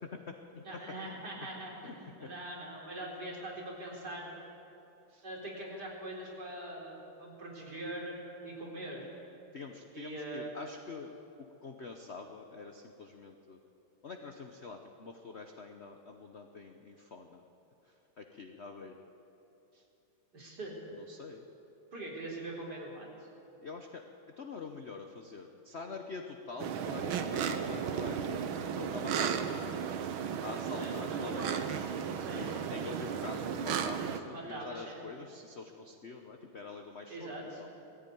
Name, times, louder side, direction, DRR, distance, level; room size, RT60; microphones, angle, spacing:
voice 1, 0.0-0.8 1.8-2.3 5.1-5.2 9.5-13.6 14.0-17.4 17.9-19.0 19.7-19.8 20.9-21.4 23.6-24.1 24.4-29.9 30.4-31.9 32.3-37.7, left 4 dB, 50° left, 4 dB, 0.8 m, -46 dB
voice 2, 0.6-4.3 5.2-9.1 9.9-10.6 20.3-20.8 21.9-23.1 30.8-31.6 32.1-32.7 34.3-35.1 37.1-37.6, right 1 dB, 50° right, -3 dB, 4.5 m, -42 dB
sound 1, 26.6-34.2, right 7 dB, 75° right, 1.7 m, -34 dB
19.0 x 15.0 x 9.3 m, 2.9 s
omnidirectional pair, 2.3 m